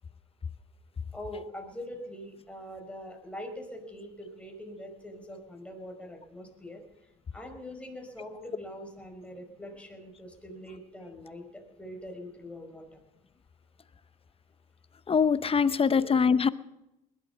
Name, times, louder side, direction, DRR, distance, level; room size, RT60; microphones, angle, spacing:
voice 1, 1.1-6.8 7.3-13.0 15.9-16.0, left 1 dB, 5° left, 3 dB, 5.1 m, -43 dB
voice 2, 15.1-16.5, left 6 dB, 30° left, 15 dB, 0.9 m, -23 dB
20.5 x 12.0 x 5.5 m, 0.92 s
hypercardioid pair, 65°, 19 cm